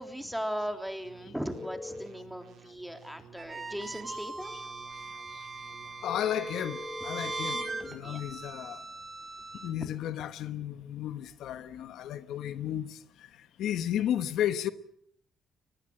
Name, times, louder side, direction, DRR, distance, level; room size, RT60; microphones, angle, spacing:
voice 1, 0.0-4.6 7.8-8.2, equal, ahead, 3.5 m, -38 dB
sound 1, 1.0-6.0, right 8 dB, 75° right, 3.9 m, -55 dB
sound 2, 1.5-2.1 6.0-7.9, left 2 dB, 35° left, 3.0 m, -41 dB
sound 3, 3.4-9.7, right 3 dB, 35° right, 5.4 m, -40 dB
voice 2, 6.0-8.8 9.6-13.0 13.6-14.7, left 11 dB, 80° left, 1.1 m, -33 dB
24.5 x 19.0 x 7.9 m
cardioid pair, 90°, 0 cm